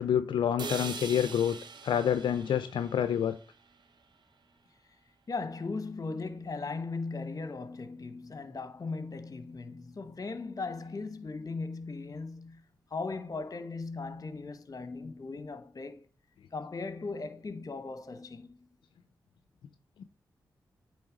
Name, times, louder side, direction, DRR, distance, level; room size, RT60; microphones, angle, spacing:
voice 1, 0.0-1.6 1.8-3.4, left 9 dB, 80° left, 0.4 m, -27 dB
sound 1, 0.6-4.6, right 5 dB, 65° right, 0.9 m, -44 dB
voice 2, 5.3-12.6 12.9-16.0 16.5-18.7, left 3 dB, 45° left, 1.0 m, -38 dB
8.7 x 3.3 x 5.0 m
cardioid pair, 45°, 8 cm